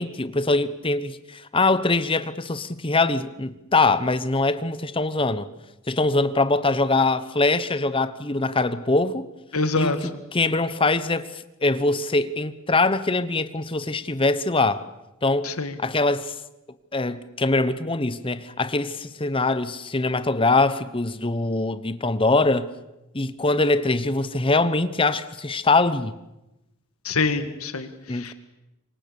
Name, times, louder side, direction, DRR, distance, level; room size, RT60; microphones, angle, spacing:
voice 1, 0.0-5.5 5.9-9.3 9.8-11.3 11.6-14.8 15.2-15.5 15.8-16.3 16.9-22.7 23.1-26.1 28.1-28.3, left 3 dB, 25° left, 1.0 m, -23 dB
voice 2, 9.5-10.0 15.4-15.7 27.1-27.9 28.2-28.3, left 3 dB, 80° left, 1.9 m, -24 dB
27.0 x 23.5 x 7.0 m
head